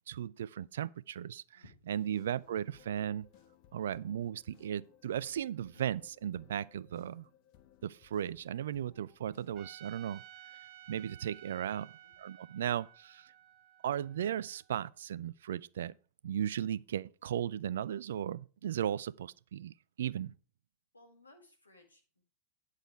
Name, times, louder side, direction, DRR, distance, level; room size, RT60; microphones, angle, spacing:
voice 1, 0.1-3.3 3.7-7.3 7.8-10.2 10.9-11.9 12.2-13.3 13.8-15.9 16.2-20.3, right 10 dB, 60° right, 0.4 m, -36 dB
sound 1, 1.9-9.7, left 11 dB, 45° left, 1.1 m, -63 dB
Trumpet, 9.5-14.7, right 12 dB, 40° right, 0.8 m, -55 dB
voice 2, 20.9-22.3, left 1 dB, 80° left, 2.3 m, -60 dB
10.0 x 6.6 x 4.7 m
figure-of-eight pair, 90°, 0 cm